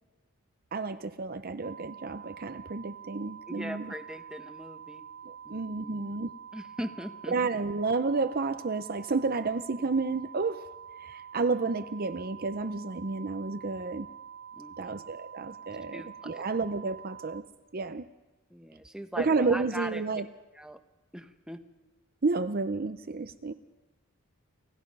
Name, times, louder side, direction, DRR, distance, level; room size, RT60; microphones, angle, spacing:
voice 1, 0.7-3.9 5.2-6.3 7.3-10.7 11.0-14.1 14.8-17.5 17.7-18.1 19.2-20.3 22.2-23.5, right 4 dB, 45° right, 0.7 m, -31 dB
sound 1, 1.6-17.4, right 8 dB, 65° right, 2.0 m, -47 dB
voice 2, 3.5-5.0 5.4-6.0 6.5-7.3 14.6-15.0 15.9-16.4 18.5-20.0 20.5-20.8 21.1-21.6, equal, 5° right, 1.1 m, -40 dB
29.0 x 17.0 x 5.4 m
head